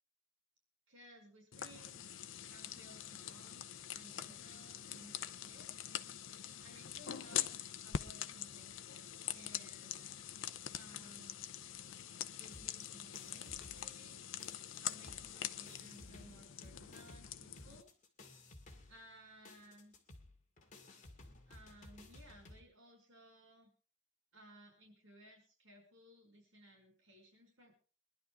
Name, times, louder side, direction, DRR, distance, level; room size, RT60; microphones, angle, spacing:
voice 1, 0.9-5.7 6.6-7.5 7.8-8.8 9.3-10.2 10.7-11.6 12.4-14.2 14.8-17.9 18.9-20.0 21.5-23.7 24.3-27.7, right 1 dB, 80° right, 2 dB, 5.7 m, -60 dB
sound 1, 1.5-17.8, left 10 dB, 80° left, 0.7 m, -44 dB
sound 2, 12.5-14.1 14.4-22.6, left 2 dB, 40° left, 2.3 m, -57 dB
24.0 x 11.5 x 3.5 m, 0.38 s
head